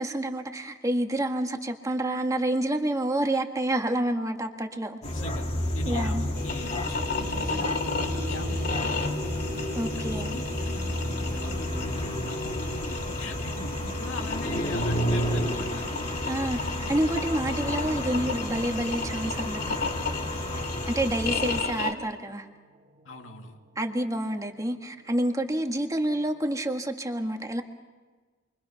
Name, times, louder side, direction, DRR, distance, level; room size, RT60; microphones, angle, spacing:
voice 1, 0.0-5.0 5.9-6.3 9.8-10.4 16.3-19.8 20.9-22.5 23.8-27.6, right 1 dB, 15° right, 4 dB, 1.8 m, -28 dB
voice 2, 5.0-5.5 5.7-9.5 9.9-15.9 20.5-20.7 23.0-23.6, left 2 dB, 75° left, 3 dB, 2.6 m, -42 dB
sound 1, 5.0-21.6, left 1 dB, 35° left, 2.9 m, -31 dB
sound 2, 6.4-21.9, left 3 dB, 55° left, 3.1 m, -34 dB
sound 3, 7.2-26.6, left 4 dB, 40° right, 1.2 m, -48 dB
29.0 x 23.5 x 5.8 m, 1.3 s
head